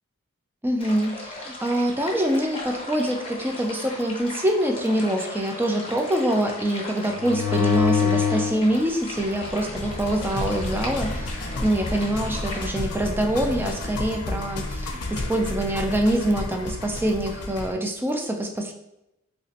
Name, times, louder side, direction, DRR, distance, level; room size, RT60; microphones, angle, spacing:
voice 1, 0.6-18.7, right 1 dB, 10° right, 3 dB, 0.3 m, -25 dB
sound 1, 0.8-12.7, left 2 dB, 25° left, 0.7 m, -37 dB
sound 2, 7.1-8.6 9.2-17.7, left 4 dB, 90° left, 0.5 m, -28 dB
3.2 x 2.9 x 2.8 m, 0.86 s
head